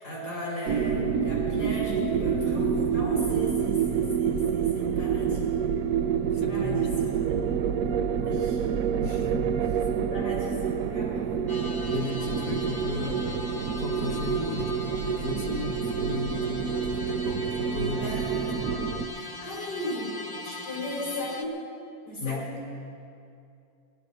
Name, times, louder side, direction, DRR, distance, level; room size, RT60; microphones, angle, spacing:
voice 1, 0.0-5.6 6.5-7.4 8.1-8.7 9.9-11.2 13.0-13.1 17.9-18.8 19.1-21.5 22.0-22.6, equal, 80° left, -5 dB, 5.8 m, -36 dB
sound 1, 0.7-19.1, right 7 dB, 70° right, 0.9 m, -28 dB
voice 2, 6.3-7.0 9.0-9.9 11.9-13.4 13.8-18.1 18.5-18.9 22.2-22.5, left 3 dB, 60° left, 0 dB, 1.5 m, -35 dB
sound 2, 11.5-21.4, left 3 dB, 25° left, 0.5 m, -40 dB
16.5 x 12.0 x 6.7 m, 2.5 s
omnidirectional pair, 1.7 m